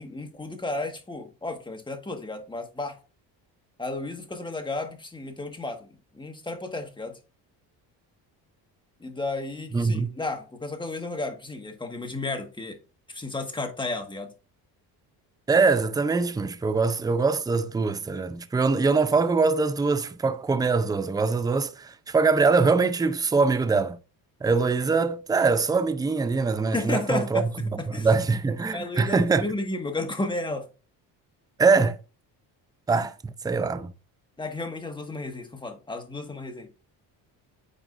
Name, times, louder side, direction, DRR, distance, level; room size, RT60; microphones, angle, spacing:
voice 1, 0.0-3.0 3.8-5.9 6.1-7.2 9.0-12.8 13.1-14.3 26.7-28.1 28.7-30.7 34.4-36.7, left 2 dB, 10° left, 1.7 m, -33 dB
voice 2, 9.7-10.1 15.5-24.0 24.4-27.4 27.9-29.5 31.6-32.0 32.9-33.9, right 4 dB, 10° right, 0.5 m, -23 dB
8.9 x 4.8 x 2.6 m
supercardioid pair, 85°, 44 cm